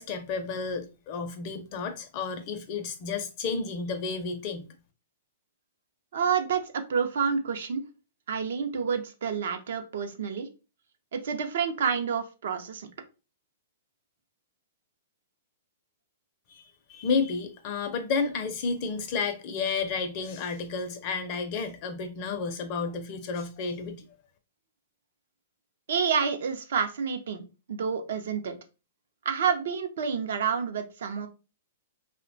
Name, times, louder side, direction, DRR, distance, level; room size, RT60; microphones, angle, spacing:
voice 1, 0.0-4.7 16.5-16.6 16.9-24.0, left 4 dB, 40° left, 0.4 m, -31 dB
voice 2, 6.1-7.8 8.3-10.5 11.1-12.9 25.9-27.4 27.7-28.5 29.2-31.3, right 6 dB, 70° right, 0.5 m, -28 dB
2.9 x 2.1 x 2.5 m
hypercardioid pair, 150°, 0 cm